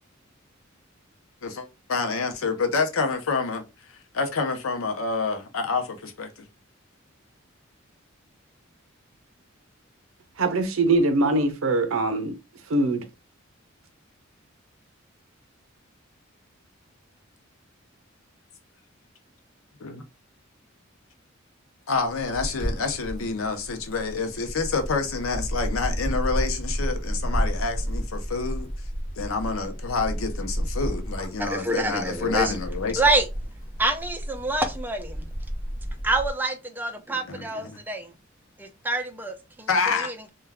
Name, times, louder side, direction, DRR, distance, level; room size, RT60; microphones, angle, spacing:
voice 1, 1.4-3.6 4.1-6.3 19.8-20.0 21.9-28.7 29.2-33.0 37.3-37.7 39.7-40.1, left 4 dB, 85° left, 0.6 m, -28 dB
voice 2, 10.4-12.3 12.7-13.1, right 2 dB, 85° right, 0.6 m, -22 dB
sound 1, 22.1-36.3, equal, 40° left, 0.8 m, -31 dB
voice 3, 31.4-32.5 32.9-33.3 33.8-35.3 36.0-38.1 38.6-40.3, right 2 dB, 10° right, 0.4 m, -27 dB
2.2 x 2.2 x 3.3 m
head